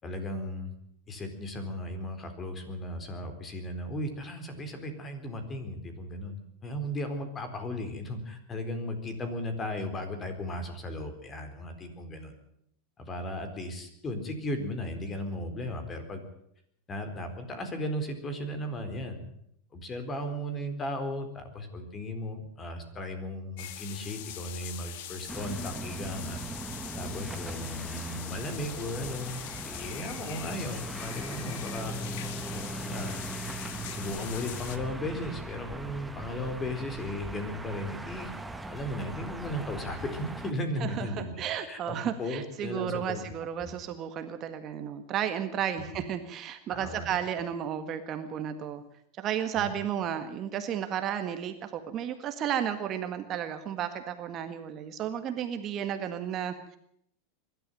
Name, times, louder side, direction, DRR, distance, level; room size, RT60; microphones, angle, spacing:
voice 1, 0.0-0.7 1.1-12.4 13.0-16.2 16.9-19.3 19.7-26.4 27.0-32.0 32.5-33.1 33.9-38.3 38.7-43.3 46.7-47.1 49.5-49.7, left 1 dB, 20° left, 7 dB, 4.1 m, -36 dB
sound 1, 23.6-34.8, left 12 dB, 65° left, 2.0 m, -42 dB
sound 2, 25.3-40.5, right 2 dB, 5° right, 1.2 m, -40 dB
voice 2, 40.8-48.8 49.2-56.8, right 9 dB, 35° right, 8 dB, 1.7 m, -33 dB
22.5 x 12.5 x 9.2 m, 0.71 s
supercardioid pair, 140°, 0 cm